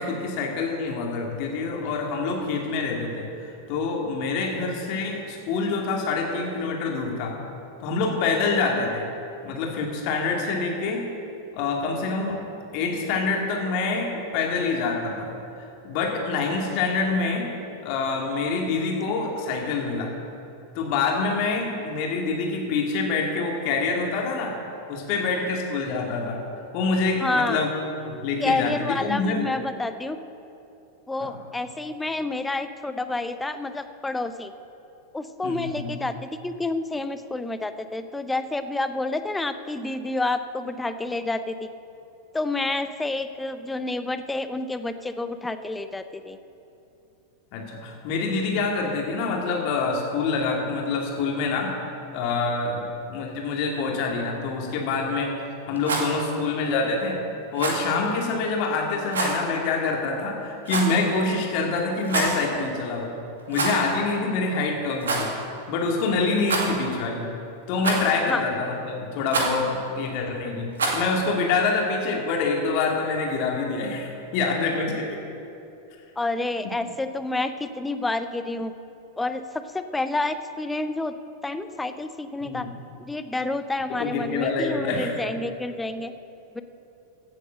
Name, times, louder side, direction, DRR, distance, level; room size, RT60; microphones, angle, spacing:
voice 1, 0.0-7.4 7.8-9.1 9.4-11.1 11.5-12.4 12.7-17.5 17.8-20.1 20.7-24.5 24.9-26.4 26.7-27.7 28.0-29.5 31.2-31.4 35.4-35.9 47.5-51.8 52.1-55.3 55.7-57.2 57.5-63.2 63.5-65.3 65.7-67.3 67.7-75.2 82.4-82.8 83.9-85.1, left 4 dB, 45° left, 0 dB, 2.4 m, -26 dB
voice 2, 27.2-27.6 28.4-30.2 31.1-34.5 35.1-36.2 36.4-41.7 42.3-46.4 68.3-68.4 76.2-78.7 79.2-79.4 79.7-81.1 81.4-82.7 83.1-86.1 86.5-86.6, left 2 dB, 10° left, 10 dB, 0.7 m, -29 dB
Rattle, 55.7-56.1 57.6-57.9 59.1-59.4 60.7-61.1 62.0-62.4 63.5-63.9 64.2-64.3 65.0-65.3 66.4-66.9 67.8-68.2 69.3-69.6 70.8-71.1, right 3 dB, 70° right, 2.1 m, -26 dB
16.0 x 8.0 x 6.4 m, 2.8 s
figure-of-eight pair, 90°, 0 cm